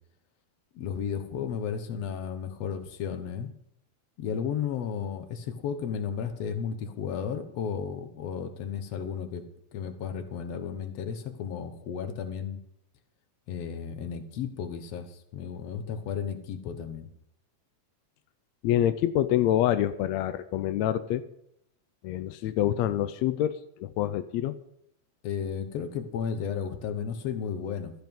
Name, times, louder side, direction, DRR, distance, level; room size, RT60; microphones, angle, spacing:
voice 1, 0.7-3.5 4.2-12.6 13.5-17.1 25.2-27.9, left 7 dB, 60° left, 9 dB, 2.0 m, -33 dB
voice 2, 18.6-21.2 22.0-23.5 23.8-24.6, left 12 dB, 85° left, 12 dB, 1.5 m, -26 dB
13.0 x 10.5 x 5.4 m, 0.77 s
omnidirectional pair, 3.8 m